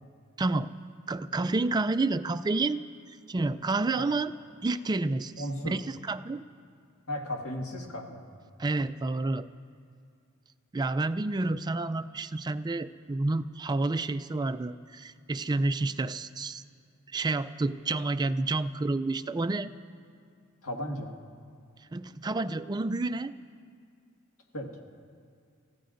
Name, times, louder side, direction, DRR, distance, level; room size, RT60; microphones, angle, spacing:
voice 1, 0.4-0.7 1.1-2.8 3.3-4.3 4.6-6.4 8.6-9.5 10.7-16.6 17.1-19.7 21.9-23.3, right 2 dB, 20° right, 11 dB, 0.3 m, -29 dB
voice 2, 5.4-5.7 7.1-8.2 20.6-21.1 24.5-24.7, equal, 75° left, 0 dB, 1.8 m, -35 dB
30.0 x 15.0 x 2.6 m, 2.2 s
head